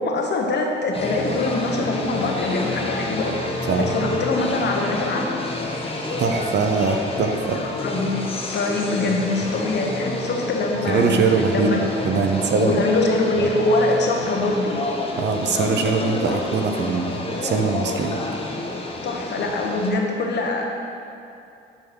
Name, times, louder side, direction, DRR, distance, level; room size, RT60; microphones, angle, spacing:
voice 1, 0.0-5.4 7.6-8.2 8.5-11.2 11.5-11.8 12.6-14.8 19.0-20.6, left 2 dB, 60° left, 1 dB, 1.3 m, -23 dB
sound 1, 0.9-19.9, left 2 dB, 30° left, 1.2 m, -29 dB
voice 2, 3.7-4.2 6.2-7.6 9.4-9.5 10.9-11.7 12.0-12.8 13.4-13.5 15.2-18.2, right 4 dB, 60° right, 4 dB, 0.9 m, -22 dB
9.9 x 3.8 x 6.2 m, 2.6 s
cardioid pair, 90°, 20 cm